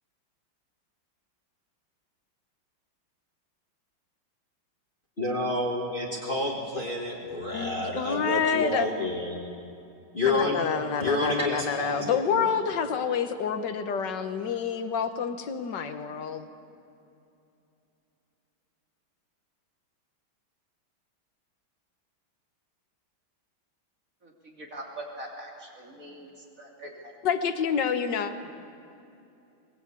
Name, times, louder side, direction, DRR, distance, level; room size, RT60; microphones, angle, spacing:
voice 1, 5.2-9.5 10.1-10.6 11.0-12.5, left 2 dB, 25° left, -1 dB, 2.2 m, -29 dB
voice 2, 7.5-8.9 10.3-16.5 27.2-28.3, left 7 dB, 60° left, 9 dB, 1.7 m, -28 dB
voice 3, 24.2-26.3 26.6-27.1, right 1 dB, 40° right, -1 dB, 3.5 m, -42 dB
21.0 x 21.0 x 8.4 m, 2.7 s
omnidirectional pair, 2.2 m